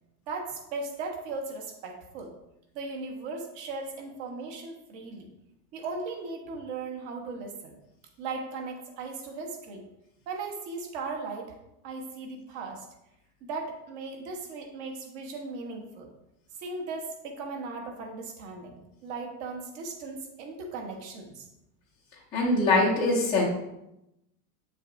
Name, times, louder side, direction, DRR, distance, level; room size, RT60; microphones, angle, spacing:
voice 1, 0.3-2.3 2.7-5.3 5.7-7.8 8.2-9.8 10.3-11.5 11.8-12.9 13.4-16.1 16.6-21.5, right 3 dB, 45° right, 2 dB, 1.3 m, -37 dB
voice 2, 22.3-23.4, left 2 dB, 10° left, -9 dB, 0.4 m, -23 dB
8.6 x 6.4 x 2.6 m, 0.86 s
supercardioid pair, 175°, 48 cm